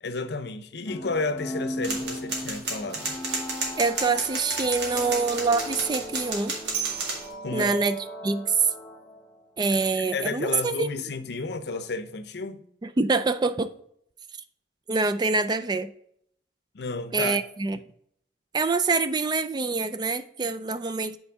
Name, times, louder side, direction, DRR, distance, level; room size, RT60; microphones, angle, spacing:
voice 1, 0.0-3.2 7.4-7.7 10.1-12.7 16.7-17.4, left 3 dB, 65° left, 0.6 m, -32 dB
sound 1, 0.9-9.5, equal, 10° left, 1.4 m, -38 dB
sound 2, 1.8-7.3, right 3 dB, 80° right, 2.0 m, -32 dB
voice 2, 3.8-6.5 7.5-8.7 9.6-10.9 12.8-13.7 14.9-15.9 17.1-17.8 18.5-21.2, right 4 dB, 25° right, 0.3 m, -25 dB
8.5 x 4.5 x 3.5 m
head